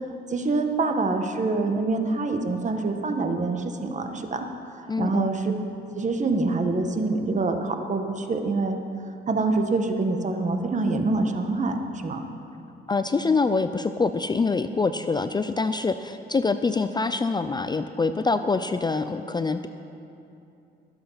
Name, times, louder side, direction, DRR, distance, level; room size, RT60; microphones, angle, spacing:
voice 1, 0.3-4.5 4.7-5.5 5.9-8.8 9.3-12.2, right 3 dB, 40° right, 5 dB, 1.3 m, -25 dB
voice 2, 4.9-5.3 12.9-19.7, left 4 dB, 20° left, 10 dB, 0.4 m, -25 dB
21.0 x 7.7 x 5.7 m, 2.7 s
cardioid pair, 90°, 20 cm